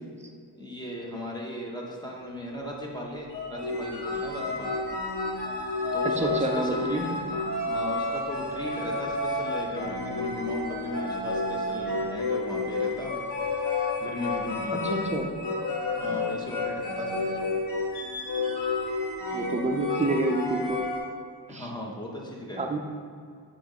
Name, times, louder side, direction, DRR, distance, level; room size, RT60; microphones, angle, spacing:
voice 1, 0.3-4.7 5.9-13.3 14.0-14.8 15.9-17.5 18.7-18.8 21.5-22.7, left 1 dB, 10° left, -2 dB, 0.9 m, -37 dB
sound 1, 3.3-21.0, left 2 dB, 75° left, 1.7 m, -30 dB
voice 2, 6.2-7.0 14.8-15.3 16.1-16.2 19.3-20.8 21.5-21.7 22.6-22.8, right 2 dB, 20° right, 2 dB, 0.5 m, -28 dB
7.9 x 3.0 x 5.0 m, 2.2 s
wide cardioid pair, 165°, 41 cm